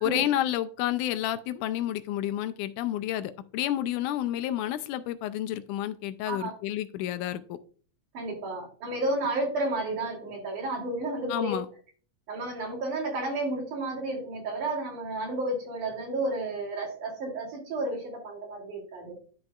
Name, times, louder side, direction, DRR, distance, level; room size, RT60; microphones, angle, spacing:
voice 1, 0.0-7.6 11.3-11.7, left 12 dB, 85° left, 12 dB, 2.0 m, -30 dB
voice 2, 8.1-11.6 12.3-19.1, right 2 dB, 75° right, -1 dB, 4.3 m, -32 dB
10.5 x 6.2 x 2.4 m, 0.41 s
omnidirectional pair, 3.6 m